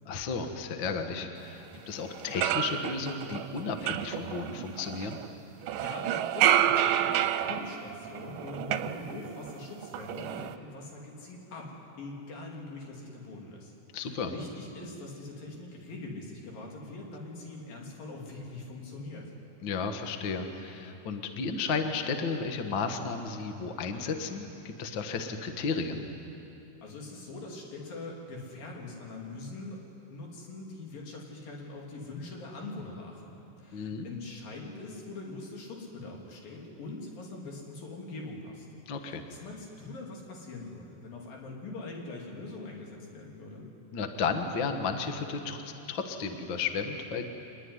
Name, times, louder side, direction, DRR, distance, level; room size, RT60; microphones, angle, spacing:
voice 1, 0.0-5.2 13.9-14.3 19.6-26.0 33.7-34.1 38.9-39.2 43.9-47.2, left 5 dB, 50° left, 5 dB, 1.5 m, -33 dB
sound 1, 1.7-1.8 2.1-5.3 5.6-9.5 9.8-10.6, right 11 dB, 80° right, 2.3 m, -29 dB
voice 2, 5.8-13.7 14.0-19.3 26.8-29.8 30.1-38.7 39.0-43.6, left 2 dB, 80° left, -1 dB, 4.9 m, -42 dB
24.5 x 21.5 x 9.8 m, 3.0 s
omnidirectional pair, 4.0 m